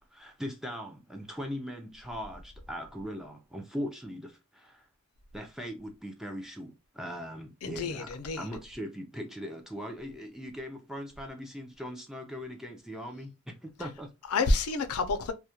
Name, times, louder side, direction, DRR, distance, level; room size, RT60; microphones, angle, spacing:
voice 1, 0.1-4.9 5.3-14.1, equal, ahead, 0.3 m, -40 dB
voice 2, 7.6-8.5 14.3-15.3, left 3 dB, 80° left, 0.4 m, -28 dB
2.3 x 2.1 x 2.7 m
head